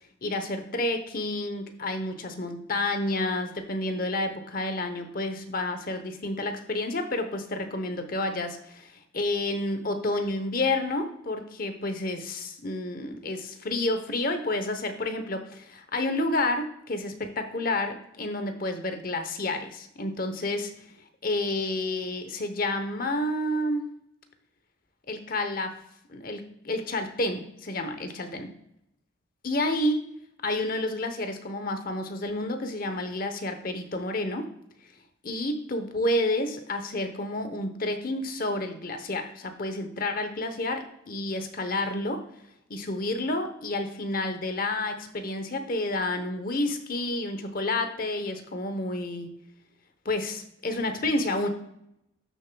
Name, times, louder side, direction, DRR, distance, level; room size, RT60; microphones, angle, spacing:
voice 1, 0.2-20.7 21.2-23.9 25.1-25.7 26.1-28.5 29.4-30.0 30.4-34.5 35.2-42.2 42.7-49.3 50.0-51.5, left 2 dB, 45° left, 7 dB, 0.9 m, -30 dB
12.5 x 6.7 x 2.3 m, 0.77 s
head